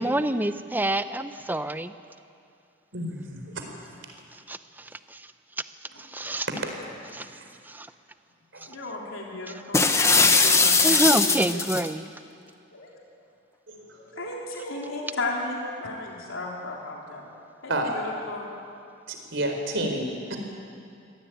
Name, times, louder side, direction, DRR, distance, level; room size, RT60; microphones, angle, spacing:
voice 1, 0.0-1.9 4.3-5.3 6.0-6.5 7.1-7.3 7.6-7.9 10.8-12.0, right 1 dB, 10° right, 11 dB, 0.6 m, -27 dB
voice 2, 2.9-3.6 7.4-7.5 8.5-8.6 13.7-14.3 17.7-17.9 19.1-20.4, right 1 dB, 65° right, 3 dB, 4.2 m, -31 dB
voice 3, 8.7-11.7 12.7-12.9 13.9-17.3 17.6-18.5, left 2 dB, 85° left, -2 dB, 3.7 m, -35 dB
sound 1, 9.7-11.9, left 4 dB, 15° left, 1.0 m, -20 dB
24.5 x 17.0 x 9.2 m, 2.5 s
head